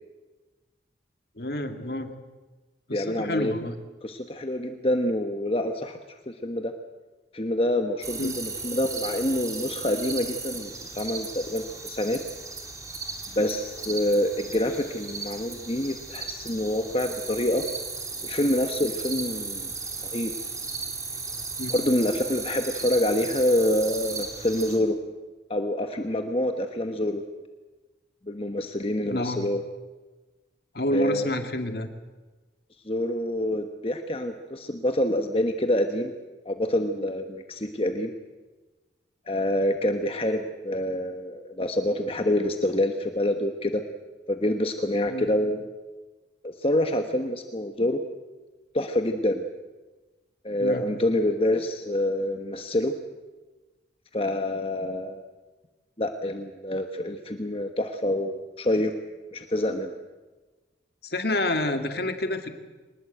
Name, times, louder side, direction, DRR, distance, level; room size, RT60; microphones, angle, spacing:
voice 1, 1.4-2.1 2.9-3.7 8.2-8.3 19.1-19.3 21.6-21.7 29.0-29.5 30.7-31.9 45.1-45.3 50.6-50.8 61.0-62.5, left 1 dB, 60° left, 6 dB, 2.1 m, -28 dB
voice 2, 2.9-3.5 4.0-6.0 6.3-6.7 7.3-12.2 13.3-17.6 18.2-19.7 20.0-20.3 21.7-25.0 25.5-27.2 28.3-29.6 30.9-31.3 32.8-36.1 36.4-38.1 39.3-43.8 44.3-45.6 46.4-48.0 48.7-49.4 50.4-52.9 54.1-55.2 56.0-58.9 59.3-59.9, left 1 dB, 30° left, 6 dB, 1.3 m, -26 dB
sound 1, 8.0-24.8, right 4 dB, 20° right, 2.7 m, -36 dB
24.0 x 20.5 x 8.0 m, 1.2 s
head